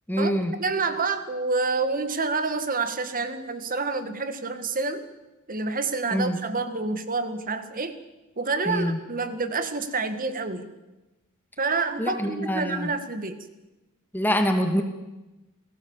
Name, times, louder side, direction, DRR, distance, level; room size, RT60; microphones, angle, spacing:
voice 1, 0.1-0.5 6.1-6.4 8.7-9.0 12.0-12.9 14.1-14.8, equal, 10° left, 5 dB, 2.0 m, -25 dB
voice 2, 0.6-5.0 5.5-8.0 8.4-10.7 11.6-13.4, right 4 dB, 40° right, 10 dB, 1.8 m, -28 dB
28.5 x 18.0 x 7.3 m, 1.1 s
head